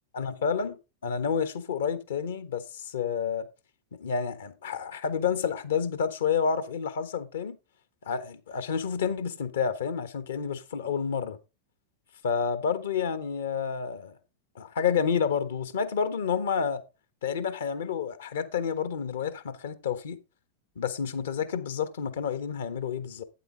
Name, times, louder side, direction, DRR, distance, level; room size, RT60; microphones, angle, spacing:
voice 1, 0.1-3.5 3.9-7.6 8.1-11.4 12.2-14.2 14.5-16.8 17.2-20.2 20.8-23.2, left 6 dB, 60° left, 1.1 m, -29 dB
8.8 x 8.2 x 3.9 m
figure-of-eight pair, 90°, 0 cm